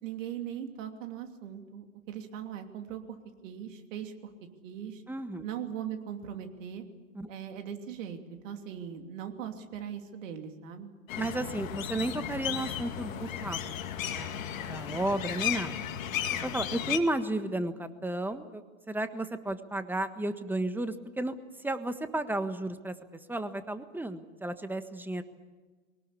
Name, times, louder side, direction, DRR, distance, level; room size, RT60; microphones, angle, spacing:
voice 1, 0.0-3.2 3.4-4.1 4.6-5.0 5.4-6.8 7.3-10.9, right 9 dB, 65° right, 5 dB, 3.0 m, -40 dB
voice 2, 5.1-5.5 7.1-7.3 11.2-13.6 14.1-15.8 16.3-25.2, right 1 dB, 5° right, 10 dB, 1.4 m, -33 dB
sound 1, 11.1-17.0, left 10 dB, 70° left, 2.3 m, -34 dB
22.5 x 19.0 x 8.5 m, 1.3 s
hypercardioid pair, 95°, 42 cm